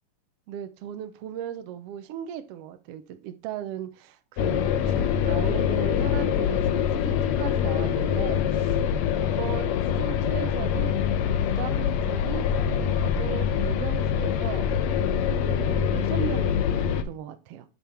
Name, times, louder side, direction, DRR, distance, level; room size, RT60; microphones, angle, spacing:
voice 1, 0.5-8.8 9.1-10.9 11.4-14.7 15.4-17.6, right 10 dB, 85° right, 1.3 m, -37 dB
sound 1, 4.4-17.0, left 8 dB, 80° left, 1.7 m, -25 dB
7.0 x 5.5 x 4.4 m
omnidirectional pair, 3.6 m